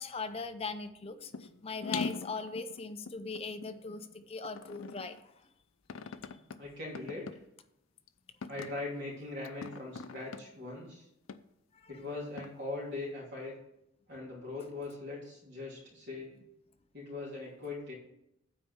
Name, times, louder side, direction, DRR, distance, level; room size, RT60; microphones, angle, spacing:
voice 1, 0.0-5.2 11.7-11.9, left 4 dB, 30° left, 9 dB, 0.6 m, -40 dB
sound 1, 1.3-1.5 1.8-3.8 4.4-5.2 5.9-6.6 6.9-7.3 8.0-8.1 8.4-8.8 9.4-10.4 11.3-11.4 12.4-12.5, left 5 dB, 85° left, 0.5 m, -40 dB
voice 2, 6.3-7.2 8.5-11.1 11.9-13.5 14.1-16.3 16.9-17.9, left 2 dB, 60° right, -4 dB, 2.9 m, -41 dB
8.7 x 4.5 x 7.0 m, 0.80 s
head